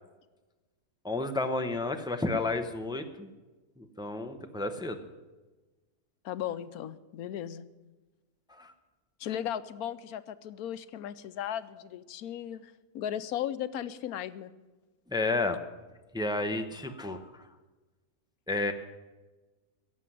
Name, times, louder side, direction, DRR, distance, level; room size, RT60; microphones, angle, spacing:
voice 1, 1.0-3.3 3.8-5.0 8.5-8.7 15.1-15.6 16.1-17.4 18.5-18.7, left 2 dB, 5° right, 6 dB, 0.7 m, -31 dB
voice 2, 6.2-7.6 9.2-14.5, left 10 dB, 90° left, 14 dB, 1.2 m, -36 dB
17.0 x 7.6 x 10.0 m, 1.2 s
omnidirectional pair, 1.5 m